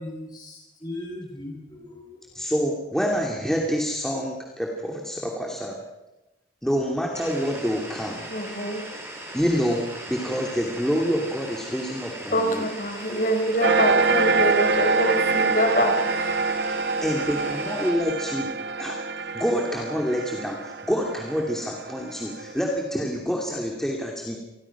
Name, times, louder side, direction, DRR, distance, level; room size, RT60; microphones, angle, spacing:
voice 1, 0.0-2.4, left 1 dB, 20° left, -1 dB, 8.0 m, -38 dB
voice 2, 2.3-5.7 6.6-8.2 9.3-12.7 17.0-18.5 18.8-19.0 19.3-24.4, equal, 5° left, -1 dB, 2.7 m, -27 dB
sound 1, 7.1-17.9, right 1 dB, 15° right, 5.1 m, -39 dB
voice 3, 8.3-8.8 12.3-16.4, equal, 45° left, 5 dB, 4.4 m, -25 dB
sound 2, 13.6-22.6, right 4 dB, 65° right, 0.9 m, -25 dB
28.0 x 21.5 x 6.1 m, 0.96 s
head